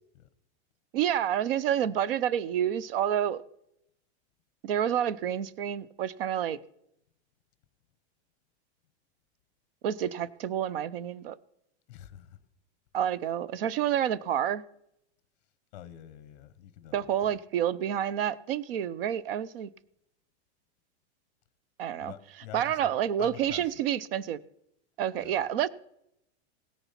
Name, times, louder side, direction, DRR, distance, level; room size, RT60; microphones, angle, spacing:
voice 1, 0.9-3.4 4.6-6.6 9.8-11.4 12.9-14.6 16.9-19.7 21.8-22.1 22.5-24.4 25.0-25.7, right 10 dB, 55° right, 0.6 m, -29 dB
voice 2, 11.9-12.4 15.7-17.0 22.0-22.9 23.2-23.6 25.1-25.4, left 12 dB, 40° left, 0.9 m, -46 dB
17.0 x 6.9 x 5.8 m
supercardioid pair, 180°, 34 cm